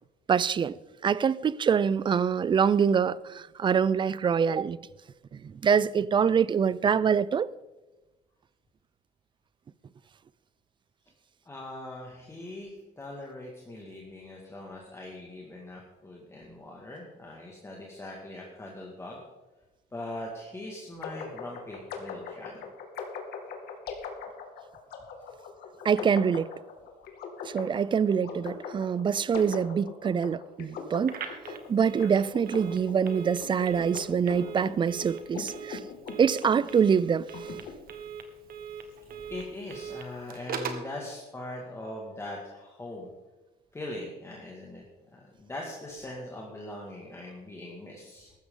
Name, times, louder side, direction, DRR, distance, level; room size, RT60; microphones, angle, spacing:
voice 1, 0.3-0.8 1.0-4.8 5.4-7.5 25.8-26.5 27.4-31.2 31.7-35.8 36.2-37.3, right 7 dB, 30° right, 0.4 m, -25 dB
voice 2, 11.5-19.2 19.9-22.7 39.3-43.1 43.7-44.8 45.1-48.3, left 1 dB, 15° left, 2.1 m, -41 dB
sound 1, 21.0-37.7, left 6 dB, 70° left, 2.1 m, -41 dB
Telephone, 31.0-40.9, right 6 dB, 60° right, 1.6 m, -41 dB
15.0 x 12.5 x 3.9 m
cardioid pair, 110°, 17 cm